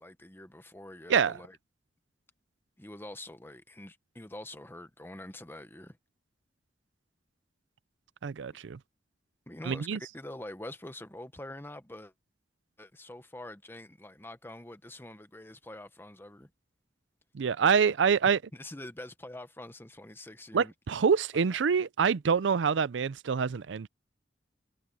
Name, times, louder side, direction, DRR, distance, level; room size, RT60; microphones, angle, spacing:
voice 1, 0.0-1.6 2.8-6.0 9.5-12.1 12.8-16.5 18.5-20.7 21.5-21.6, left 1 dB, 15° left, 1.1 m, -45 dB
voice 2, 8.2-8.8 9.7-10.0 17.3-18.4 20.5-23.9, right 6 dB, 90° right, 0.5 m, -26 dB
head